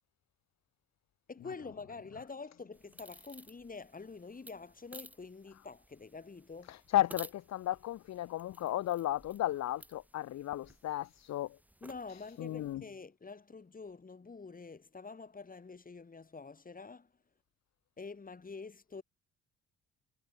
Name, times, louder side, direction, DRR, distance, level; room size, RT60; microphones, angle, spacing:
voice 1, 1.3-6.7 11.8-17.1 18.0-19.0, left 4 dB, 30° left, 4.8 m, -47 dB
sound 1, 2.7-12.7, right 1 dB, 5° right, 3.6 m, -56 dB
voice 2, 6.7-11.5 12.4-12.8, left 14 dB, 60° left, 0.7 m, -34 dB
cardioid pair, 90°, 30 cm